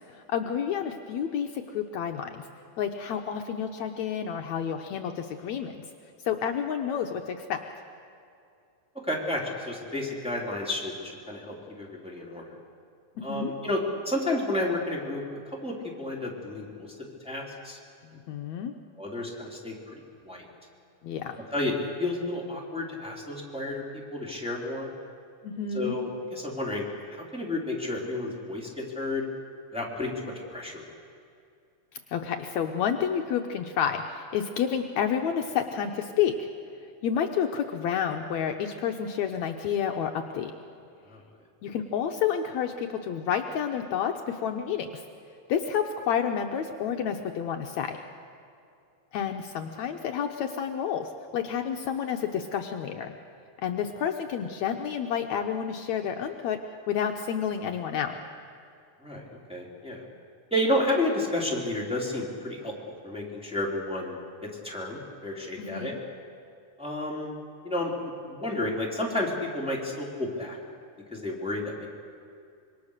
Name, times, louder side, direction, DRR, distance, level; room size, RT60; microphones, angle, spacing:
voice 1, 0.1-2.5 2.8-5.8 6.2-7.6 13.2-13.5 18.0-18.7 21.0-21.4 25.4-26.0 32.1-36.5 37.0-40.5 41.6-45.0 45.5-48.0 49.1-53.1 53.6-56.6 56.9-58.2 65.6-66.0, left 8 dB, 70° left, 4 dB, 2.1 m, -30 dB
voice 2, 9.0-12.4 13.2-13.8 14.0-15.2 15.6-16.9 17.2-17.8 19.0-20.5 21.5-23.8 24.1-24.9 25.7-26.9 27.1-29.2 29.7-30.8 41.1-41.2 59.0-59.2 59.5-60.0 60.5-64.1 64.4-65.9 66.8-67.3 67.6-67.9 68.3-70.6 71.1-71.9, left 1 dB, ahead, -3 dB, 3.3 m, -31 dB
26.0 x 23.0 x 6.7 m, 2.5 s
omnidirectional pair, 3.5 m